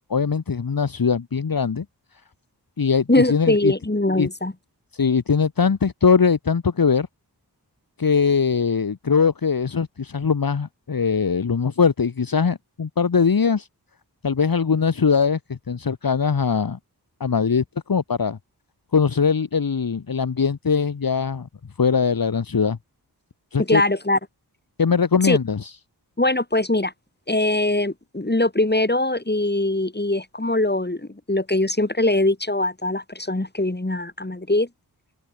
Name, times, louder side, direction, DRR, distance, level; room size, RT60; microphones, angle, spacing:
voice 1, 0.1-1.8 2.8-3.7 4.2-4.3 4.9-7.1 8.0-13.7 14.2-16.8 17.2-18.4 18.9-21.5 21.8-22.8 23.5-23.8 24.8-25.7, left 5 dB, 60° left, 1.4 m, -21 dB
voice 2, 3.1-4.5 23.6-24.2 25.2-25.4 26.2-26.9 27.3-34.7, left 2 dB, 25° left, 5.5 m, -22 dB
open air
wide cardioid pair, 60°, 40 cm